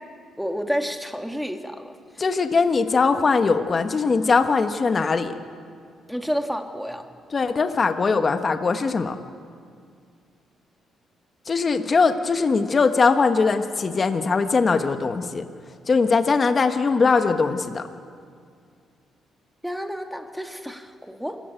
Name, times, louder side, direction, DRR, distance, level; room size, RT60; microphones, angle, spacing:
voice 1, 0.4-1.9 6.1-7.0 19.6-21.4, equal, ahead, 5 dB, 2.0 m, -30 dB
voice 2, 2.2-5.4 7.3-9.2 11.5-15.4 15.9-17.8, left 4 dB, 35° left, 8 dB, 1.4 m, -21 dB
27.0 x 15.0 x 9.2 m, 2.2 s
cardioid pair, 90°, 0 cm